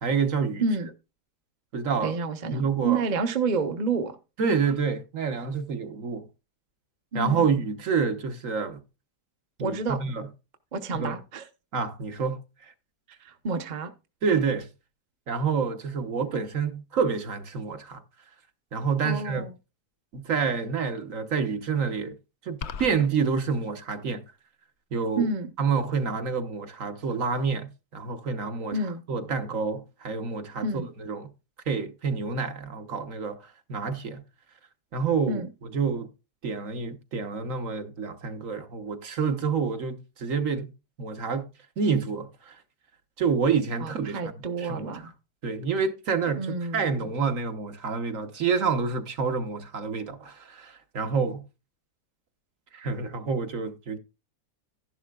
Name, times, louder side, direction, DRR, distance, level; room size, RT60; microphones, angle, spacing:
voice 1, 0.0-0.6 1.7-2.2 2.5-3.0 4.4-6.3 7.1-8.8 9.6-10.3 10.9-11.2 11.7-12.7 14.2-14.7 15.3-18.0 18.7-19.4 20.1-22.2 22.4-24.2 24.9-25.3 25.6-28.8 29.1-30.7 31.0-31.3 31.7-34.2 34.9-35.4 35.7-36.1 36.4-40.7 41.0-41.5 41.8-42.6 43.2-44.2 44.6-45.0 45.4-51.5 52.7-54.0, right 5 dB, 55° right, 1.4 m, -28 dB
voice 2, 2.0-4.2 7.1-7.6 9.6-10.0 10.7-11.5 13.2-13.9 19.0-19.5 25.2-25.5 28.7-29.0 30.6-30.9 35.3-35.5 43.8-45.1 46.4-47.1, right 4 dB, 35° right, 0.9 m, -29 dB
sound 1, 22.6-23.1, left 6 dB, 55° left, 0.8 m, -36 dB
13.0 x 11.0 x 2.4 m
omnidirectional pair, 1.8 m